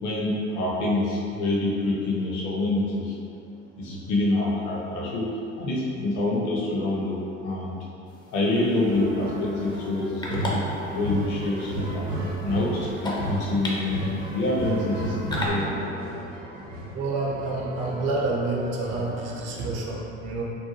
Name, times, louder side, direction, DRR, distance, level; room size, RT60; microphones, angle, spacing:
voice 1, 0.0-3.2 3.8-7.8 8.3-12.1 12.4-15.9, left 2 dB, 55° left, -4 dB, 0.7 m, -26 dB
sound 1, 8.1-15.5, left 1 dB, 10° left, 0.4 m, -38 dB
sound 2, 8.5-19.9, right 1 dB, 85° right, 0.6 m, -33 dB
voice 2, 16.9-20.4, right 2 dB, 45° right, -2 dB, 0.6 m, -28 dB
2.7 x 2.1 x 3.0 m, 2.7 s
figure-of-eight pair, 65°, 37 cm